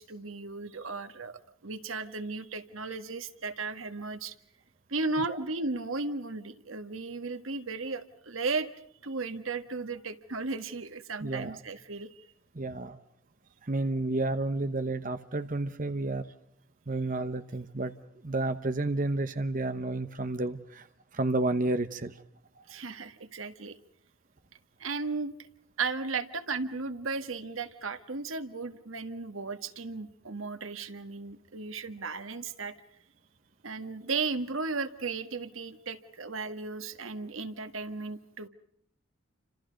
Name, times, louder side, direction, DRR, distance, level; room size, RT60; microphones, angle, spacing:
voice 1, 0.0-4.3 4.9-8.7 9.0-12.3 22.7-23.8 24.8-25.3 25.8-32.7 33.6-38.5, right 4 dB, 85° right, 10 dB, 1.6 m, -35 dB
voice 2, 11.2-11.6 12.5-13.0 13.6-16.2 16.9-17.9 18.2-20.9 21.1-22.1, right 2 dB, 40° right, 9 dB, 1.0 m, -31 dB
30.0 x 26.5 x 5.2 m, 0.68 s
head